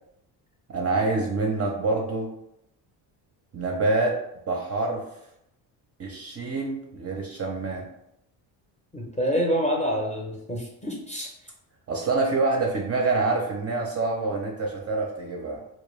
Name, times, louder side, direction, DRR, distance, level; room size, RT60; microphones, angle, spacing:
voice 1, 0.7-2.3 3.5-4.2 4.5-5.0 6.0-7.9 11.9-15.6, right 3 dB, 30° right, -1 dB, 0.5 m, -26 dB
voice 2, 8.9-11.3, equal, 15° left, -1 dB, 0.6 m, -27 dB
2.2 x 2.1 x 3.1 m, 0.81 s
supercardioid pair, 75°, 49 cm